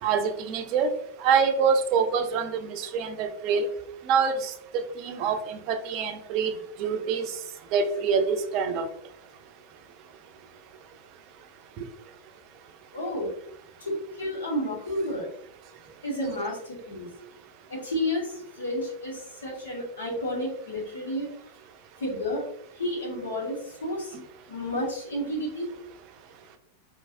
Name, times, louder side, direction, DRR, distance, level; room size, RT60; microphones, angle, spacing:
voice 1, 0.0-0.9 1.2-3.7 4.0-7.4 7.7-8.9 11.8-11.9, right 6 dB, 40° right, 8 dB, 0.6 m, -26 dB
voice 2, 12.9-13.3 13.8-15.3 16.0-17.1 17.7-21.3 22.0-22.5 22.8-24.2 24.5-25.7, left 1 dB, 70° left, -3 dB, 1.7 m, -31 dB
4.6 x 3.6 x 2.6 m, 0.67 s
figure-of-eight pair, 90°, 0 cm